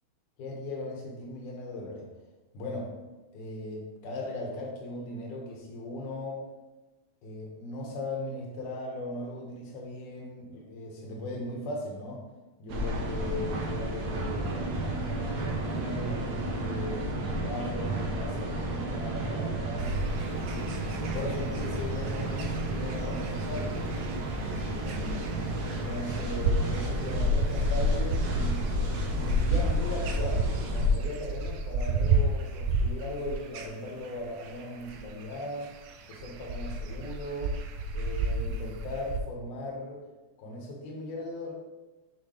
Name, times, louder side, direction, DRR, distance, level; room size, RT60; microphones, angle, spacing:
voice 1, 0.4-2.1 2.5-2.9 3.3-6.4 7.2-12.2 12.6-14.6 15.3-17.1 17.4-20.0 20.3-24.1 24.7-25.2 25.6-28.6 29.1-30.5 30.7-35.7 36.1-37.6 37.9-40.0 40.4-41.5, left 1 dB, 80° left, -1 dB, 2.7 m, -38 dB
sound 1, 12.7-30.9, equal, 60° right, 1.7 m, -31 dB
sound 2, 19.8-39.2, right 3 dB, 80° right, 1.9 m, -32 dB
6.5 x 6.4 x 3.3 m, 1.1 s
omnidirectional pair, 3.5 m